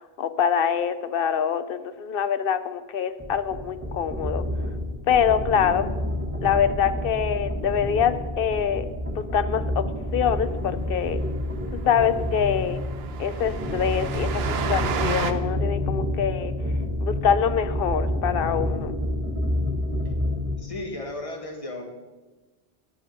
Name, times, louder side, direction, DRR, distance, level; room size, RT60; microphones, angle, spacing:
voice 1, 0.2-4.4 5.1-5.9 6.4-8.9 9.3-9.8 10.1-11.2 11.7-12.8 13.2-16.5 17.0-18.9, left 8 dB, 65° left, 13 dB, 0.8 m, -24 dB
sound 1, 3.2-20.6, left 1 dB, 15° right, 1.3 m, -29 dB
Train, 10.7-10.8 11.1-11.2 11.5-11.6 12.0-15.3, right 7 dB, 80° right, 0.9 m, -32 dB
voice 2, 20.6-21.8, left 2 dB, 35° left, 2 dB, 1.6 m, -34 dB
11.0 x 9.0 x 5.1 m, 1.2 s
omnidirectional pair, 1.0 m